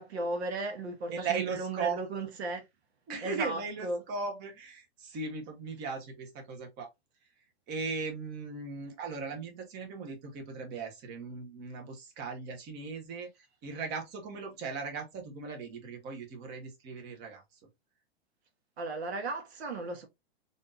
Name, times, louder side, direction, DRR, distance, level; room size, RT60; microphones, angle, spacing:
voice 1, 0.0-2.7 3.2-4.0 18.8-20.1, right 2 dB, 80° right, 1.1 m, -35 dB
voice 2, 1.1-2.0 3.1-6.9 7.7-17.6, right 4 dB, 30° right, 1.1 m, -38 dB
3.5 x 2.6 x 2.5 m
hypercardioid pair, 130°, 32 cm